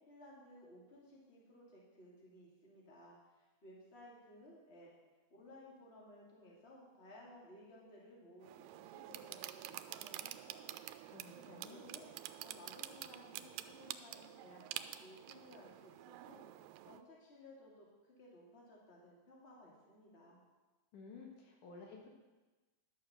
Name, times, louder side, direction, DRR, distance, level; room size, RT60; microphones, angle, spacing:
voice 1, 0.0-4.9 5.3-10.8 11.4-12.1 12.4-16.5 16.8-20.4, left 1 dB, 20° left, -4 dB, 2.3 m, -58 dB
sound 1, 8.4-17.0, right 13 dB, 85° right, 2.2 m, -48 dB
voice 2, 11.1-11.8 20.9-22.1, left 4 dB, 75° left, 0 dB, 2.9 m, -54 dB
11.0 x 6.8 x 6.7 m, 1.2 s
omnidirectional pair, 3.7 m